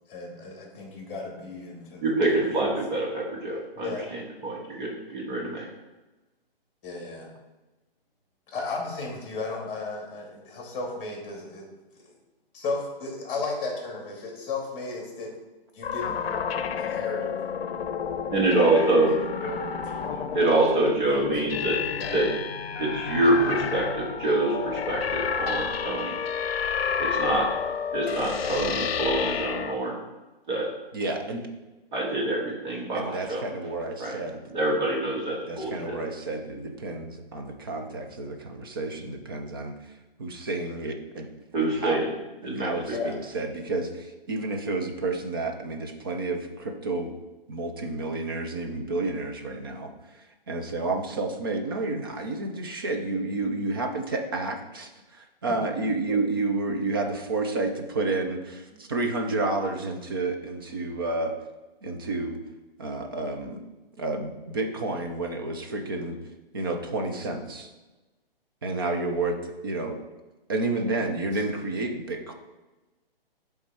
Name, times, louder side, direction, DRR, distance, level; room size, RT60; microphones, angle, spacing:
voice 1, 0.1-2.7 3.7-4.1 6.8-7.3 8.5-11.7 12.0-12.1 12.5-15.3 15.7-16.2 16.5-17.4 18.6-20.2 21.0-21.2 22.0-22.2 42.9-43.1 56.1-56.2 71.3-71.4, left 3 dB, 20° left, 0 dB, 1.7 m, -35 dB
voice 2, 2.0-5.7 18.3-19.1 20.3-21.8 22.1-22.3 22.8-26.1 27.0-27.5 27.9-30.0 30.5-30.7 31.9-33.5 34.0-34.2 34.5-36.0 41.5-42.1 42.4-43.0, right 2 dB, 50° right, -4 dB, 2.1 m, -26 dB
sound 1, 15.8-29.8, left 7 dB, 80° left, 0.6 m, -30 dB
voice 3, 30.9-31.4 32.9-34.4 35.5-39.9 40.2-41.3 41.6-42.0 42.4-47.1 47.5-49.9 50.5-61.3 61.8-62.4 62.8-63.6 64.0-66.2 66.5-67.7 68.6-69.4 69.6-70.0 70.5-72.3, right 2 dB, 25° right, 4 dB, 0.4 m, -30 dB
7.5 x 3.6 x 4.2 m, 1.1 s
hypercardioid pair, 160°, 30 cm